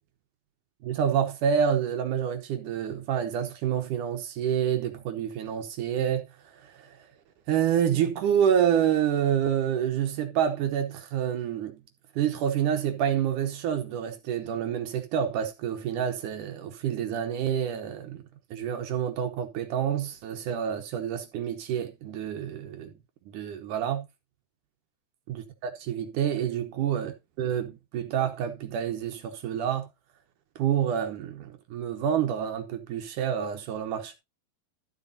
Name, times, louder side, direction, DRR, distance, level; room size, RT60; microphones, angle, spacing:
voice 1, 0.8-6.3 6.6-7.1 7.5-11.8 12.2-18.2 18.5-22.9 23.3-24.1 25.3-29.9 30.6-34.2, right 9 dB, 70° right, 2.2 m, -28 dB
12.5 x 8.0 x 2.7 m
omnidirectional pair, 4.4 m